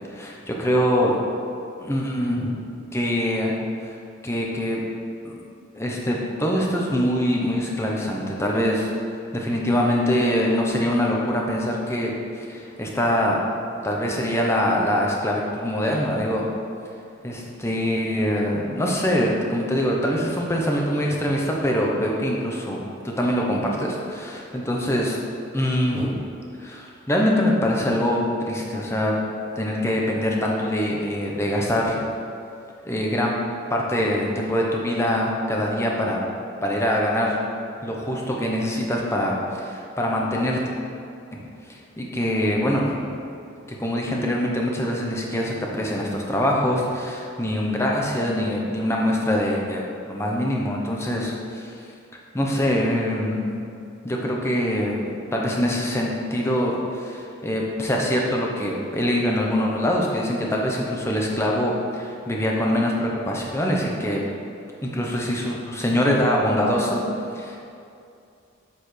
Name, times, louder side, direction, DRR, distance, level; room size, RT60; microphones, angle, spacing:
voice 1, 0.1-1.2 1.8-2.5 2.9-3.6 3.8-3.9 4.2-4.8 5.2-5.4 5.7-8.9 9.3-13.4 13.8-16.5 17.2-25.2 25.5-26.2 26.6-29.1 29.6-31.9 32.8-33.3 33.7-36.2 36.6-37.4 37.8-40.6 41.3-41.4 41.7-43.0 43.7-51.7 52.3-53.5 54.0-64.2 64.8-67.0 67.3-67.6, equal, 15° left, -2 dB, 0.8 m, -24 dB
8.0 x 6.8 x 3.3 m, 2.5 s
head